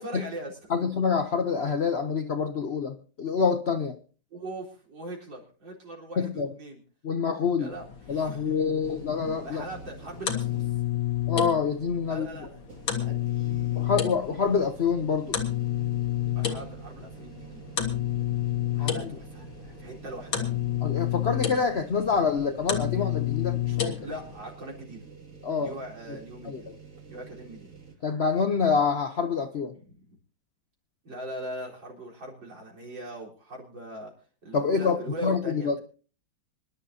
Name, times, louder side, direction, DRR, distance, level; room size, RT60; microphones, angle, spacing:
voice 1, 0.0-0.6 4.3-6.8 7.6-8.4 9.4-10.8 12.1-14.1 16.3-17.6 18.7-20.5 24.0-25.0 25.6-26.7 27.1-27.7 29.7-30.0 31.0-34.1 34.4-35.8, right 1 dB, 70° right, -2 dB, 4.7 m, -41 dB
voice 2, 0.7-4.0 6.2-6.5 7.0-7.7 8.1-9.6 11.3-12.3 13.8-15.4 18.8-18.9 20.8-24.1 25.4-25.7 26.1-26.2 26.4-26.6 28.0-29.7 34.5-35.0 35.2-35.8, left 5 dB, 55° left, 8 dB, 0.7 m, -26 dB
sound 1, 7.7-24.4, left 12 dB, 80° left, 2.4 m, -31 dB
sound 2, 8.8-11.0 11.4-11.5 12.6-27.9, right 6 dB, 40° right, 2.8 m, -48 dB
26.0 x 11.5 x 2.8 m, 0.38 s
omnidirectional pair, 2.1 m